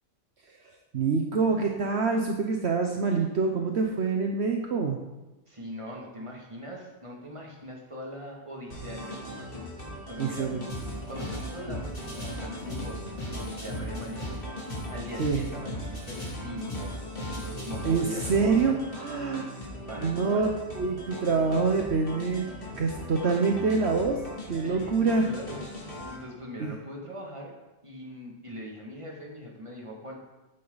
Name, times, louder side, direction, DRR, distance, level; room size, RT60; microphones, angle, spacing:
voice 1, 0.9-5.0 10.2-10.6 15.2-15.4 17.8-19.4 20.0-20.5 20.8-22.5 22.8-24.2 24.5-25.3 26.6-26.7, right 4 dB, 65° right, 2 dB, 1.2 m, -26 dB
voice 2, 5.5-10.5 11.1-13.0 13.3-14.4 14.9-18.8 19.9-20.5 24.6-27.5 27.8-30.1, equal, 25° right, -1 dB, 2.4 m, -41 dB
sound 1, 8.7-26.2, left 1 dB, 50° left, 2.6 m, -40 dB
sound 2, 10.7-18.7, equal, 30° left, 3.5 m, -38 dB
14.5 x 9.1 x 4.1 m, 1.1 s
omnidirectional pair, 1.2 m